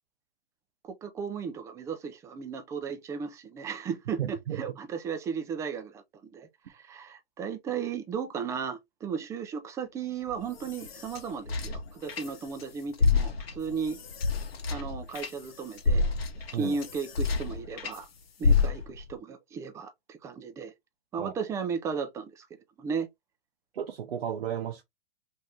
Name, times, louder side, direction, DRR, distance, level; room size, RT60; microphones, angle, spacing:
voice 1, 0.9-14.0 14.7-16.1 16.5-18.1 18.4-20.7 21.1-22.5 22.8-23.1, right 6 dB, 10° right, 0.3 m, -35 dB
voice 2, 4.2-4.7 16.5-16.8 21.2-21.3 23.7-24.8, right 9 dB, 75° right, 0.7 m, -33 dB
sound 1, 10.3-12.6 12.9-18.0 18.4-19.1, left 4 dB, 75° left, 0.9 m, -29 dB
2.8 x 2.6 x 3.1 m
hypercardioid pair, 120°, 30 cm